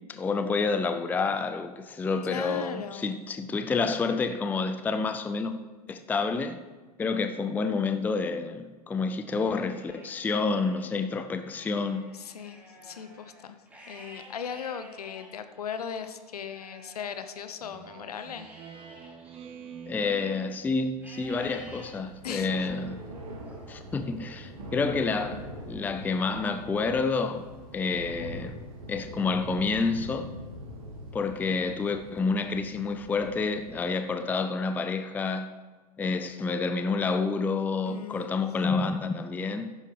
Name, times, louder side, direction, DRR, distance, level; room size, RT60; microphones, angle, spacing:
voice 1, 0.1-5.6 5.9-6.6 7.0-12.1 19.9-23.0 23.7-27.4 27.7-28.5 28.9-30.3 31.1-35.5 36.0-39.7, left 4 dB, 10° left, 0.5 m, -29 dB
voice 2, 2.2-3.3 12.1-13.6 13.9-18.5 22.2-22.5 37.9-38.4, left 7 dB, 65° left, 0.9 m, -38 dB
Livestock farm animals working animals, 9.3-10.9 11.4-17.9 18.4-20.5 21.0-21.9 22.4-22.9 23.4-24.5, right 1 dB, 5° right, 3.3 m, -52 dB
Speech synthesizer, 17.6-21.1, right 7 dB, 25° right, 1.0 m, -47 dB
Thunder / Rain, 21.1-34.0, right 1 dB, 60° right, 3.5 m, -43 dB
14.5 x 11.5 x 3.4 m
figure-of-eight pair, 95°, 21 cm